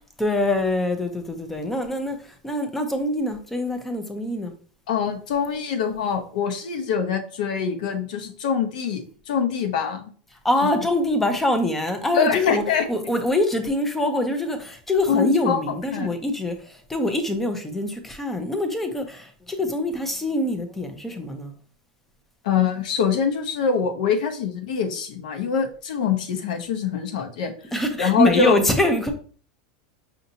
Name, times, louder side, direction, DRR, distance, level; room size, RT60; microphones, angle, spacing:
voice 1, 0.2-2.2 2.4-4.5 10.4-12.6 12.9-21.5 27.7-29.1, left 1 dB, 5° left, 0.4 m, -24 dB
voice 2, 4.9-10.1 12.1-12.8 15.1-16.1 22.4-27.5 28.0-28.6, left 6 dB, 70° left, 0.8 m, -24 dB
5.1 x 2.7 x 2.7 m
supercardioid pair, 175°, 4 cm